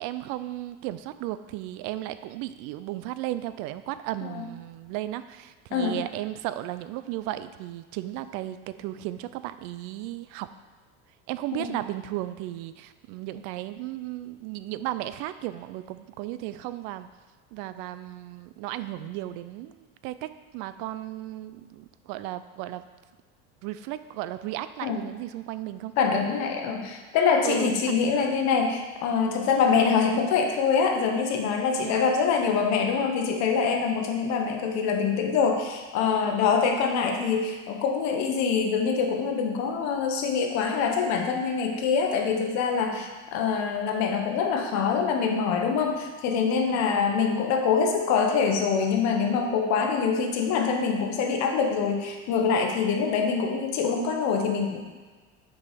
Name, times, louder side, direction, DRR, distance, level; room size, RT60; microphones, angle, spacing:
voice 1, 0.0-10.5 11.3-17.1 17.5-22.8 23.6-25.9 27.4-28.4 31.8-32.1 36.2-36.5 42.8-43.1 46.7-46.8, right 14 dB, 70° right, 13 dB, 0.5 m, -35 dB
voice 2, 26.0-54.8, left 5 dB, 60° left, 3 dB, 1.2 m, -25 dB
7.0 x 4.8 x 5.1 m, 1.4 s
cardioid pair, 140°, 31 cm